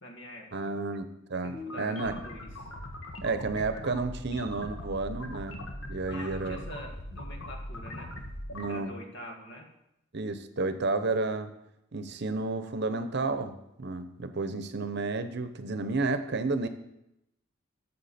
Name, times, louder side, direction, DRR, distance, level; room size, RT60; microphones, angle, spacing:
voice 1, 0.0-0.7 1.4-2.7 6.1-8.1 8.7-9.7, equal, 60° left, 2 dB, 2.0 m, -45 dB
voice 2, 0.5-2.2 3.2-5.6 5.9-6.6 8.5-8.9 10.1-11.5 11.9-16.7, right 3 dB, 55° right, 10 dB, 0.8 m, -31 dB
sound 1, 1.5-8.7, left 1 dB, 80° left, 1.6 m, -40 dB
13.0 x 7.2 x 4.3 m, 0.84 s
head